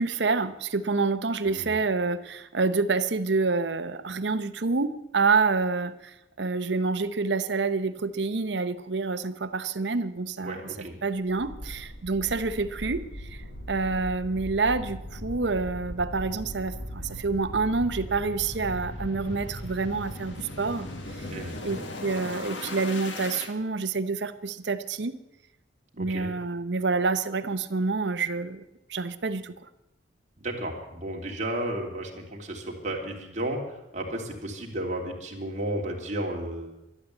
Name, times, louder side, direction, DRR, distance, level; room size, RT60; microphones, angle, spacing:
voice 1, 0.0-10.6 11.0-13.1 13.7-20.9 21.6-25.2 26.0-28.6 28.9-29.5, right 4 dB, 65° right, 13 dB, 0.8 m, -27 dB
voice 2, 10.4-10.9 21.3-21.6 25.9-26.3 30.4-36.8, right 1 dB, 40° right, 0 dB, 3.0 m, -33 dB
sound 1, 11.3-23.5, left 1 dB, 85° left, 1.9 m, -38 dB
12.0 x 12.0 x 8.4 m, 0.91 s
head